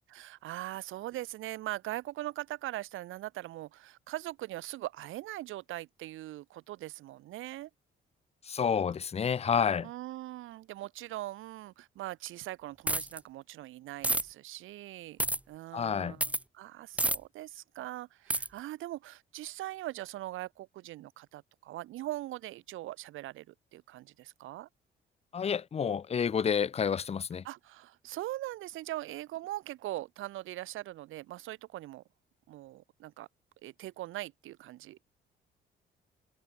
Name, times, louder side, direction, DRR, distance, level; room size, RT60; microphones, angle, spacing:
voice 1, 0.1-7.7 9.8-15.2 15.5-24.7 27.4-32.0 32.5-33.3 33.6-35.0, right 15 dB, 85° right, 2.0 m, -41 dB
voice 2, 8.5-9.9 15.7-16.2 25.3-27.4, left 7 dB, 30° left, 0.6 m, -29 dB
sound 1, 12.9-13.2 14.0-14.2 15.2-15.4 16.2-16.4 17.0-17.2 18.3-18.5, right 1 dB, 5° right, 0.7 m, -28 dB
cardioid pair, 90°, 20 cm